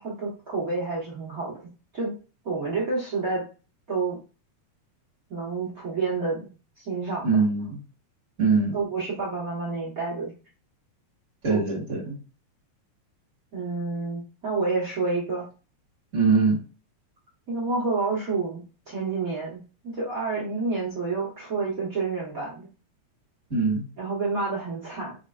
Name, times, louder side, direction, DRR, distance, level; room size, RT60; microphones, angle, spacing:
voice 1, 0.0-1.5 1.9-2.1 2.4-3.4 3.9-4.2 5.3-6.4 6.8-7.3 8.7-10.3 11.5-11.6 13.5-15.4 17.5-22.7 24.0-25.2, right 3 dB, 65° right, -4 dB, 0.8 m, -29 dB
voice 2, 7.2-7.8 8.4-8.7 11.4-12.2 16.1-16.6 23.5-23.8, right 4 dB, 30° right, -8 dB, 2.0 m, -22 dB
5.6 x 3.2 x 2.4 m, 0.34 s
omnidirectional pair, 3.4 m